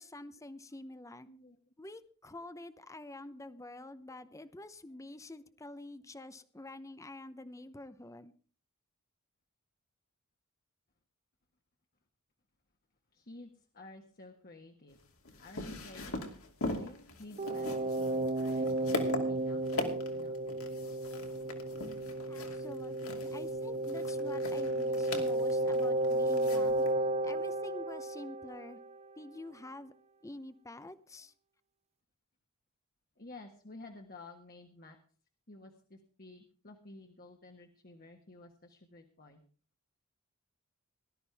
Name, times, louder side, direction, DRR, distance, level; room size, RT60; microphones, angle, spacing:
voice 1, 0.0-1.3 1.8-8.3 22.3-26.8 27.2-28.8 29.2-29.9 30.2-31.3, left 1 dB, 15° left, 13 dB, 0.7 m, -47 dB
voice 2, 1.3-1.6 13.1-15.0 15.4-16.1 16.7-20.4 21.0-21.2 33.2-35.0 35.5-39.4, left 2 dB, 45° left, 3 dB, 1.5 m, -52 dB
sound 1, 15.0-26.9, left 2 dB, 70° left, 2.6 m, -41 dB
sound 2, 17.4-29.0, right 1 dB, 30° right, 0.5 m, -33 dB
18.5 x 12.5 x 3.5 m, 0.41 s
head